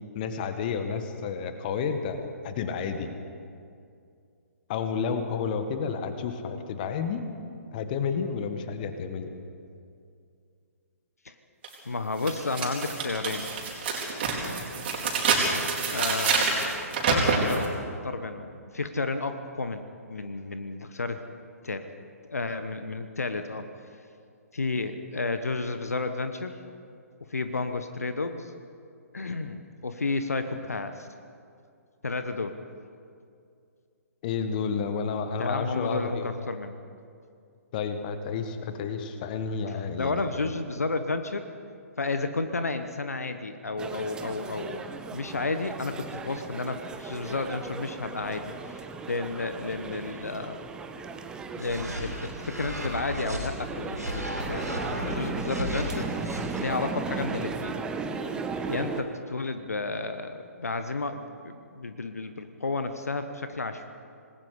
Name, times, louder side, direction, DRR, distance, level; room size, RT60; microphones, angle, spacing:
voice 1, 0.1-2.2 2.4-3.1 4.7-7.2 7.7-9.3 34.2-36.3 37.7-40.3, left 6 dB, 35° left, 8 dB, 1.6 m, -31 dB
sound 1, 11.6-11.7 12.2-17.7, right 4 dB, 40° right, 4.4 m, -27 dB
voice 2, 11.8-13.5 15.9-16.7 17.1-17.7 18.0-19.8 20.1-21.2 21.6-21.9 22.3-23.7 24.5-26.5 27.3-28.5 29.1-31.1 32.0-32.6 35.4-36.8 39.7-41.4 42.0-44.8 45.1-50.6 51.5-57.8 58.7-63.9, left 3 dB, 70° left, 9 dB, 1.2 m, -32 dB
sound 2, 43.8-59.0, right 4 dB, 10° right, 1.0 m, -36 dB
sound 3, 51.6-53.5 53.9-56.6, equal, 85° right, 5.4 m, -35 dB
26.5 x 20.0 x 5.1 m, 2.4 s
figure-of-eight pair, 125°, 9 cm